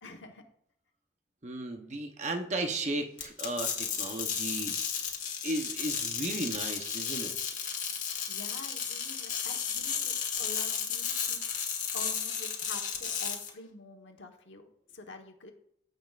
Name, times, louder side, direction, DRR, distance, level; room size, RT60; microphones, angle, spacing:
voice 1, 0.0-0.4 8.0-11.4 11.9-14.7 14.9-15.5, left 3 dB, 85° left, 4 dB, 1.2 m, -47 dB
voice 2, 1.4-4.7 5.4-7.4, right 2 dB, 40° right, 4 dB, 0.8 m, -35 dB
sound 1, 3.2-13.5, left 7 dB, 40° left, 1.3 m, -33 dB
15.0 x 5.2 x 2.4 m, 0.72 s
head